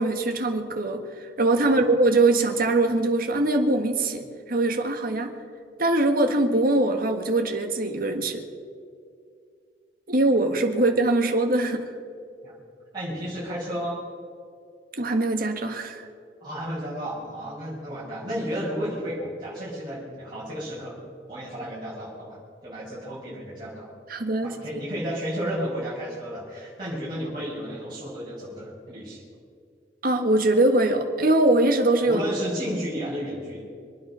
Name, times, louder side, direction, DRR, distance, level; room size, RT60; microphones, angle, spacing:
voice 1, 0.0-4.2 4.5-5.3 5.8-8.4 10.1-11.8 15.0-16.0 24.1-24.5 30.0-32.2, right 2 dB, 55° right, 5 dB, 1.6 m, -22 dB
voice 2, 1.6-1.9 12.4-12.6 12.9-14.0 16.4-21.0 21.3-23.9 24.4-29.2 32.0-33.6, equal, 25° right, -10 dB, 5.4 m, -32 dB
26.0 x 9.5 x 5.6 m, 2.3 s
head